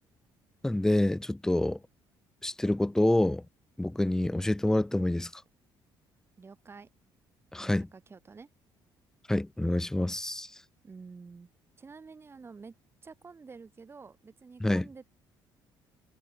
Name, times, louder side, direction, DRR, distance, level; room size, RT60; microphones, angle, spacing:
voice 1, 0.6-1.8 2.4-3.4 3.8-5.4 7.5-7.9 9.3-10.5 14.6-14.9, left 1 dB, 5° left, 0.4 m, -27 dB
voice 2, 6.4-6.9 7.6-8.5 10.8-11.5 11.8-12.7 13.0-15.1, right 4 dB, 25° right, 1.4 m, -49 dB
cardioid pair, 90°, 9 cm